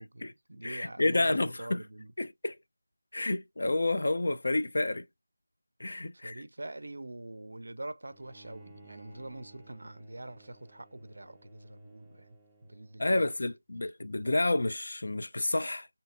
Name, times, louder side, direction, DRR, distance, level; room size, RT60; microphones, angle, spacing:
voice 1, 0.0-2.1 6.1-12.4 12.6-13.3, right 2 dB, 70° right, 0.3 m, -44 dB
voice 2, 0.6-1.8 2.2-2.6 3.1-5.0 5.8-6.4 13.0-15.9, left 2 dB, 60° left, 0.3 m, -29 dB
Bowed string instrument, 8.1-13.3, right 1 dB, 5° right, 0.4 m, -57 dB
3.3 x 2.7 x 2.4 m
figure-of-eight pair, 165°, 0 cm